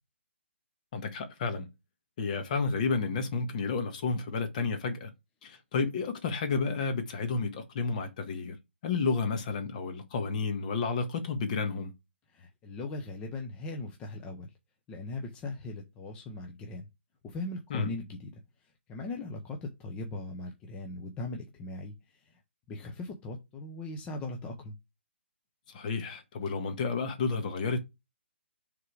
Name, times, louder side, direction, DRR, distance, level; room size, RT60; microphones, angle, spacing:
voice 1, 0.9-1.7 2.2-5.1 5.4-8.6 8.8-11.9 17.7-17.9 25.7-27.8, left 4 dB, 35° left, 1.4 m, -31 dB
voice 2, 12.3-14.5 14.9-16.9 17.2-18.3 18.9-22.4 22.7-24.7, left 2 dB, 15° left, 0.7 m, -39 dB
6.6 x 3.7 x 4.8 m
hypercardioid pair, 155°, 7 cm